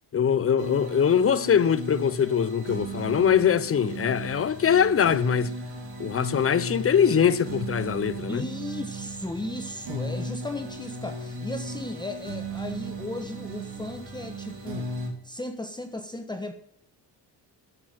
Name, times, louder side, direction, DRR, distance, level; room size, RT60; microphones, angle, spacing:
voice 1, 0.1-5.5 6.0-8.4, left 8 dB, 30° left, 0.8 m, -22 dB
sound 1, 0.6-15.1, right 1 dB, 60° right, 5.1 m, -36 dB
voice 2, 8.3-14.9 15.2-16.5, left 2 dB, 10° left, 1.2 m, -36 dB
14.0 x 6.2 x 9.2 m
cardioid pair, 95°, 42 cm